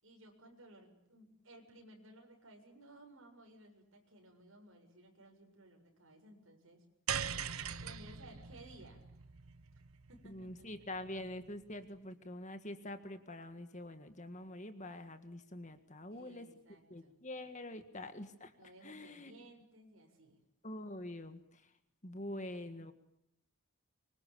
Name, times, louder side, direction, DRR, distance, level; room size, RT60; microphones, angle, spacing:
voice 1, 0.0-6.8 7.8-9.0 10.1-10.7 12.0-12.1 16.1-17.2 18.6-20.4 22.5-22.7, right 1 dB, 65° right, 2 dB, 7.3 m, -58 dB
sound 1, 7.1-11.5, right 8 dB, 80° right, 1.2 m, -42 dB
voice 2, 10.2-16.5 16.9-18.5 18.8-19.3 20.6-21.6 22.0-22.9, left 1 dB, 35° left, 9 dB, 1.8 m, -45 dB
25.0 x 23.5 x 8.6 m, 0.78 s
head